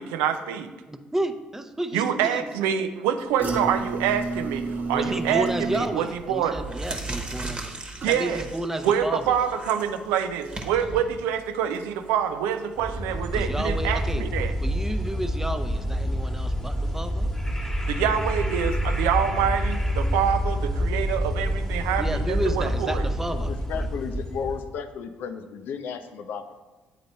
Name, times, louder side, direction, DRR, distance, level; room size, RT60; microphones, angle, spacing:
voice 1, 0.0-0.7 1.9-6.5 8.0-8.4 8.8-14.5 17.9-23.0, right 8 dB, 80° right, 9 dB, 0.5 m, -26 dB
voice 2, 0.9-2.4 4.9-7.8 8.1-9.2 13.3-14.3 14.6-17.3 22.0-23.9, right 1 dB, 10° right, 8 dB, 0.6 m, -31 dB
sound 1, 3.4-8.6 8.9-9.4 9.8-9.9, right 3 dB, 50° right, 1.0 m, -33 dB
sound 2, 5.8-6.0 6.4-12.9, right 2 dB, 25° right, 1.2 m, -37 dB
sound 3, 12.8-24.7, equal, 10° left, 1.3 m, -27 dB
voice 3, 23.4-26.6, left 6 dB, 65° left, 9 dB, 0.5 m, -34 dB
8.2 x 3.9 x 4.2 m, 1.2 s
hypercardioid pair, 55°, 4 cm